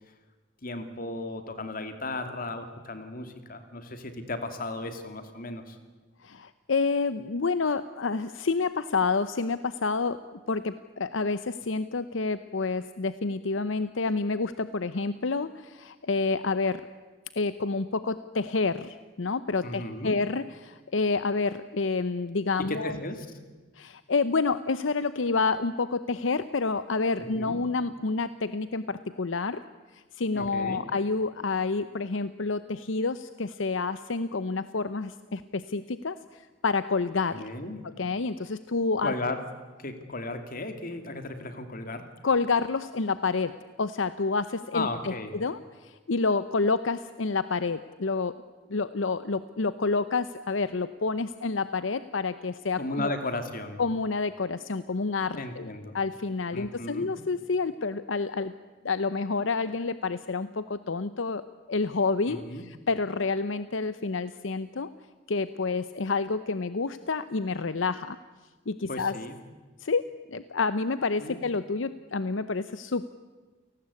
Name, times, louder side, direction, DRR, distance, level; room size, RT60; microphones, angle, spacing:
voice 1, 0.6-5.8 19.6-20.2 22.7-23.4 27.3-27.6 30.3-30.8 37.3-37.8 39.0-39.4 39.8-42.1 44.7-45.3 52.8-53.8 55.3-56.0 56.5-57.1 62.3-62.6 68.9-69.4 71.2-71.4, left 2 dB, 45° left, 7 dB, 2.6 m, -35 dB
voice 2, 6.2-10.2 10.5-16.8 17.4-22.9 23.8-29.6 29.9-37.5 38.0-39.1 42.2-48.4 48.7-53.1 53.8-55.7 55.9-58.5 58.8-61.4 61.7-64.9 65.3-68.2 68.7-69.1 69.8-70.0 70.3-73.1, left 4 dB, 75° left, 13 dB, 0.7 m, -29 dB
28.5 x 18.5 x 8.4 m, 1.3 s
head